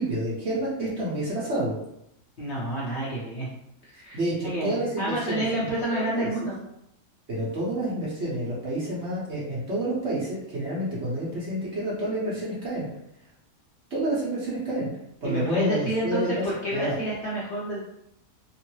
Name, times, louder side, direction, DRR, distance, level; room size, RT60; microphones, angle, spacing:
voice 1, 0.0-1.8 3.9-6.5 7.3-12.9 13.9-14.9 15.2-16.4 16.7-16.9, right 1 dB, 50° right, -7 dB, 1.0 m, -29 dB
voice 2, 2.4-3.5 3.8-6.6 15.2-17.8, right 1 dB, 55° left, -7 dB, 0.8 m, -29 dB
3.0 x 2.0 x 3.0 m, 0.79 s
omnidirectional pair, 1.7 m